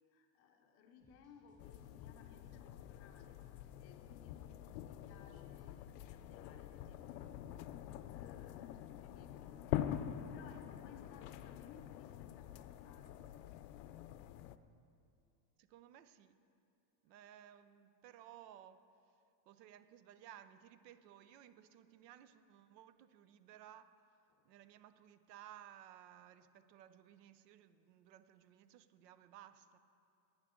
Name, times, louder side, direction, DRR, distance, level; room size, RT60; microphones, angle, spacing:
voice 1, 0.1-9.9 10.3-14.2 24.3-24.5, left 6 dB, 30° left, 4 dB, 0.6 m, -63 dB
sound 1, 1.0-8.7, left 1 dB, 15° right, 1.4 m, -70 dB
sound 2, 1.6-14.6, left 11 dB, 75° left, 0.6 m, -46 dB
voice 2, 15.6-16.3 17.0-18.8 19.5-23.9 24.4-29.8, right 11 dB, 70° right, 12 dB, 0.8 m, -58 dB
18.5 x 9.8 x 3.7 m, 2.6 s
supercardioid pair, 175°, 49 cm